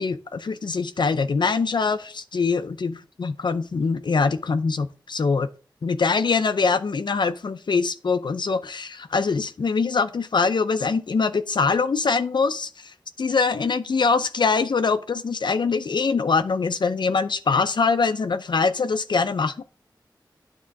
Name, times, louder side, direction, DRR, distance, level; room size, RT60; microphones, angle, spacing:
voice 1, 0.0-5.5 5.8-19.6, left 4 dB, 70° left, 9 dB, 0.6 m, -23 dB
9.6 x 3.7 x 5.8 m, 0.37 s
wide cardioid pair, 55°, 8 cm